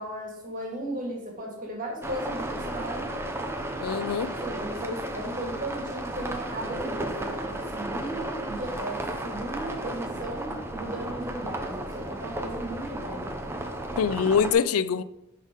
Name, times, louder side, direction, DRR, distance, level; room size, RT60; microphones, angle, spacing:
voice 1, 0.0-3.1 4.3-13.3, right 1 dB, 40° right, 2.0 m, -36 dB
sound 1, 2.0-14.5, right 1 dB, 10° right, 0.7 m, -34 dB
voice 2, 3.8-4.3 14.0-15.0, left 7 dB, 85° left, 0.4 m, -24 dB
10.0 x 4.2 x 3.8 m
head